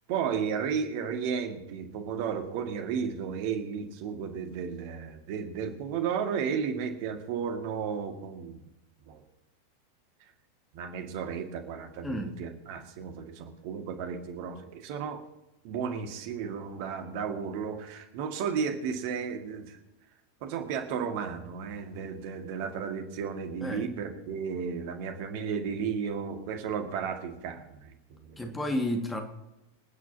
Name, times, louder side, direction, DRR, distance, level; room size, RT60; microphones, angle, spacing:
voice 1, 0.1-8.6 9.1-9.2 10.7-15.2 15.6-19.8 20.4-28.5, right 6 dB, 45° right, 5 dB, 1.9 m, -33 dB
voice 2, 12.0-12.4 23.6-23.9 28.4-29.2, left 1 dB, 10° left, 4 dB, 1.9 m, -31 dB
26.5 x 9.5 x 2.8 m, 0.91 s
figure-of-eight pair, 90°, 0 cm